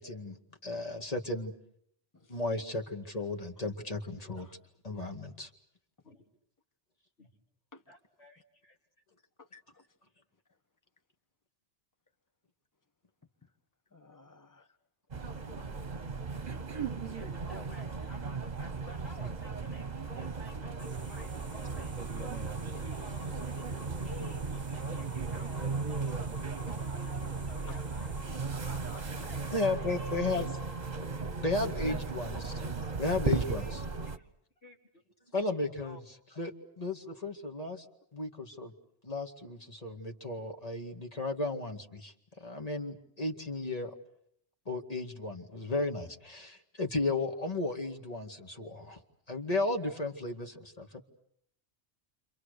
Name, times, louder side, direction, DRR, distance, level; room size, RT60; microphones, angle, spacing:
voice 1, 0.0-1.5 2.3-4.5 4.8-5.5 29.5-30.5 31.4-32.5 33.0-33.8 35.3-37.9 38.1-38.7 39.0-44.0 44.7-49.0 49.3-51.0, left 2 dB, 35° left, 4 dB, 2.3 m, -34 dB
voice 2, 7.9-8.8 17.0-21.9 22.2-23.8 24.0-26.2 26.6-30.2 31.6-31.9 32.2-32.4 32.9-33.0 33.3-33.7 34.0-34.3 34.6-35.0 35.8-36.0, left 2 dB, 75° left, 0 dB, 3.7 m, -53 dB
voice 3, 9.4-9.8 13.9-14.7 16.5-17.1 27.7-27.8, left 4 dB, 15° left, 5 dB, 1.5 m, -56 dB
sound 1, 15.1-34.2, right 4 dB, 40° right, 1.3 m, -36 dB
sound 2, 20.8-29.7, right 2 dB, 10° right, 1.2 m, -51 dB
29.5 x 26.5 x 6.7 m, 0.70 s
omnidirectional pair, 1.1 m